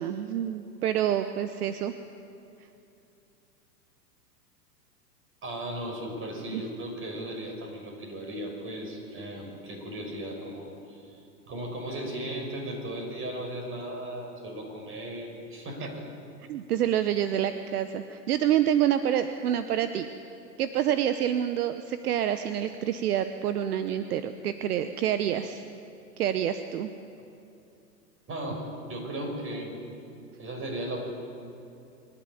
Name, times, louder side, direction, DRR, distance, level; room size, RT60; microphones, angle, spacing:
voice 1, 0.0-1.9 6.5-6.6 16.5-20.1 20.6-25.6 26.2-26.9, right 10 dB, 65° right, 10 dB, 1.0 m, -27 dB
voice 2, 5.4-16.1 28.3-29.8 30.4-31.0, right 1 dB, 25° right, 2 dB, 5.7 m, -36 dB
24.0 x 11.5 x 9.9 m, 2.7 s
hypercardioid pair, 110°, 50 cm